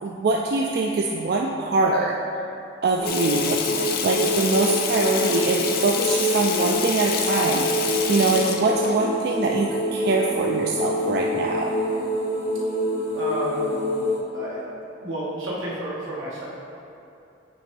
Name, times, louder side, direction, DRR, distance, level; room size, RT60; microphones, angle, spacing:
voice 1, 0.0-2.2 2.8-3.6 4.0-11.8, right 3 dB, 50° right, -1 dB, 0.3 m, -23 dB
sound 1, 3.0-14.2, equal, 75° left, 0.9 m, -26 dB
Water tap faucet / Sink (filling or washing), 3.0-8.9, left 6 dB, 50° left, 0.4 m, -28 dB
voice 2, 13.1-13.8 14.3-14.6 15.0-16.4, right 1 dB, 80° right, -7 dB, 1.5 m, -31 dB
9.2 x 3.3 x 3.2 m, 2.7 s
head